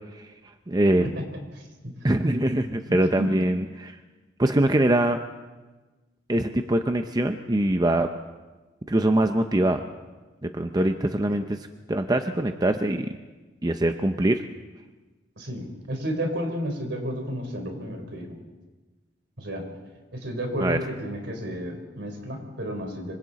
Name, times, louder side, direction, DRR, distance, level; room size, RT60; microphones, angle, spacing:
voice 1, 0.7-1.1 2.0-4.0 4.4-5.2 6.3-8.1 8.9-9.8 10.4-11.6 11.9-13.1 13.6-14.4 20.6-20.8, right 1 dB, 20° right, 7 dB, 0.7 m, -23 dB
voice 2, 1.5-1.9 2.9-3.3 15.4-18.3 19.4-19.6 20.1-23.1, equal, 65° right, 3 dB, 4.1 m, -32 dB
26.0 x 24.5 x 4.2 m, 1.2 s
head